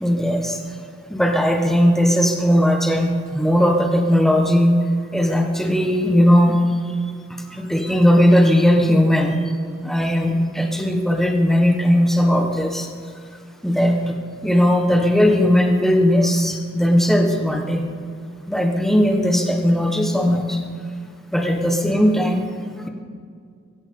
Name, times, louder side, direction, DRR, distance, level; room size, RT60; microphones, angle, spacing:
voice 1, 0.0-0.6 1.1-4.7 5.1-6.7 7.5-9.4 9.8-12.9 13.6-14.2 14.4-17.8 18.5-20.6 21.3-22.5, equal, ahead, 2 dB, 1.3 m, -18 dB
23.5 x 14.0 x 3.9 m, 2.2 s
head